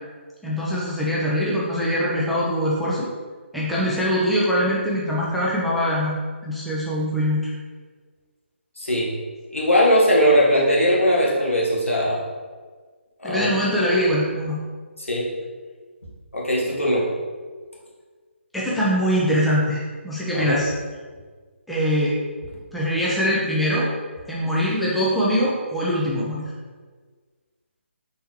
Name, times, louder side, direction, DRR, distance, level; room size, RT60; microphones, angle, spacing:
voice 1, 0.4-3.1 3.5-6.1 6.4-7.4 13.2-14.6 18.5-20.7 21.7-22.2 22.7-23.9 24.3-26.4, equal, ahead, -7 dB, 0.4 m, -22 dB
voice 2, 8.8-9.1 9.5-12.2 13.2-13.5 15.1-15.3 16.3-17.1 20.3-20.6, equal, 85° left, -5 dB, 1.4 m, -19 dB
4.3 x 3.4 x 2.9 m, 1.5 s
figure-of-eight pair, 145°, 7 cm